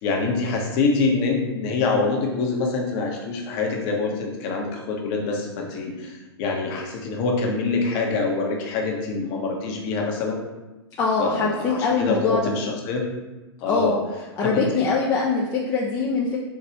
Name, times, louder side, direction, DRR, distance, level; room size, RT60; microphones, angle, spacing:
voice 1, 0.0-10.4 11.2-13.1 13.6-14.0 14.4-14.7, left 4 dB, 40° left, 0 dB, 0.9 m, -25 dB
voice 2, 11.0-12.5 13.7-14.0 14.4-16.4, left 4 dB, 25° left, -4 dB, 0.5 m, -23 dB
4.6 x 2.9 x 2.8 m, 1.1 s
hypercardioid pair, 115°, 14 cm